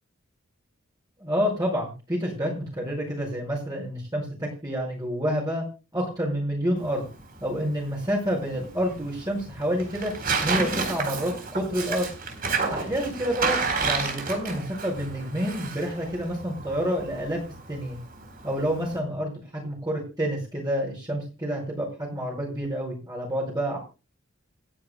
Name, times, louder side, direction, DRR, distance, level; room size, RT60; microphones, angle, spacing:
voice 1, 1.2-5.6 5.9-7.0 7.4-10.1 10.4-12.1 12.7-17.4 17.7-18.0 18.4-23.8, equal, 20° right, -3 dB, 5.1 m, -28 dB
Tearing, 6.8-19.0, right 4 dB, 45° right, 4.0 m, -31 dB
28.0 x 9.9 x 2.2 m, 0.31 s
head